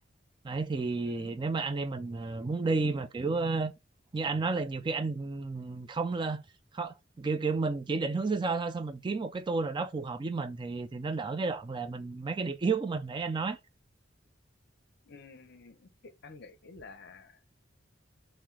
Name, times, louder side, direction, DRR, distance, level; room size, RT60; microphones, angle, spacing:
voice 1, 0.4-3.7 4.1-6.4 6.7-13.6, right 4 dB, 25° right, 0.3 m, -32 dB
voice 2, 15.0-17.4, left 4 dB, 60° left, 0.7 m, -50 dB
5.8 x 2.1 x 3.2 m
head